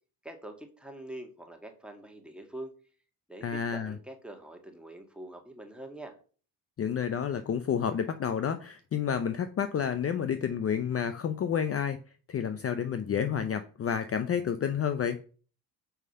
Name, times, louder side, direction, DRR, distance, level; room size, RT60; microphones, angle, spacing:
voice 1, 0.2-2.7 3.3-6.1, right 1 dB, ahead, 3 dB, 1.7 m, -44 dB
voice 2, 3.4-3.9 6.8-12.0 12.3-15.2, left 8 dB, 35° left, 9 dB, 0.6 m, -30 dB
5.6 x 4.8 x 5.4 m, 0.40 s
cardioid pair, 85°, 40 cm